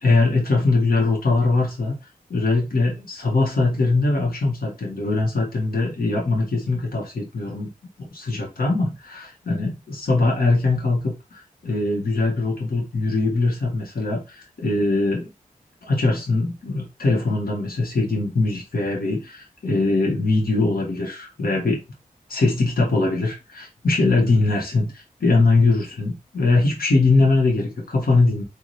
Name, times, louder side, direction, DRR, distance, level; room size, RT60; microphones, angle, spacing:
voice 1, 0.0-1.9 2.3-7.7 8.1-15.3 15.8-21.8 22.3-28.4, left 3 dB, 80° left, 1.3 m, -21 dB
4.1 x 2.7 x 3.2 m
wide cardioid pair, 105°, 15 cm